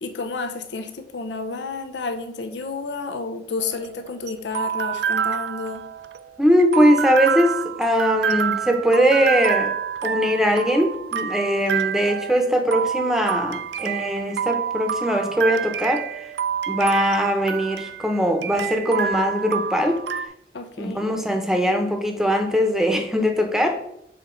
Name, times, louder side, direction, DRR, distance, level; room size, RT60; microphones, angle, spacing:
voice 1, 0.0-5.9 20.5-21.1, left 4 dB, 90° left, 7 dB, 0.7 m, -31 dB
sound 1, 3.6-20.3, right 8 dB, 80° right, 0.4 m, -27 dB
voice 2, 6.4-9.7 10.0-16.3 16.7-20.0 20.8-23.8, equal, 5° right, 4 dB, 0.8 m, -21 dB
6.8 x 4.0 x 3.8 m, 0.80 s
head